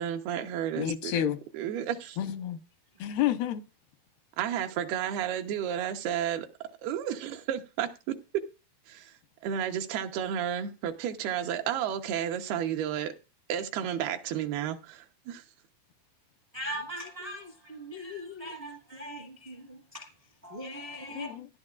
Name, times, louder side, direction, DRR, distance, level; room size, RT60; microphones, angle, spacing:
voice 1, 0.0-1.2 1.5-2.2 4.4-6.5 6.8-8.4 8.9-9.1 9.4-13.1 13.5-15.4, right 9 dB, 80° right, 2.9 m, -32 dB
voice 2, 0.7-1.4 2.2-2.6 3.0-3.6 21.1-21.5, left 11 dB, 85° left, 2.9 m, -29 dB
voice 3, 16.5-20.1 20.4-21.3, equal, 40° right, 0.8 m, -40 dB
16.5 x 11.0 x 2.4 m
omnidirectional pair, 4.5 m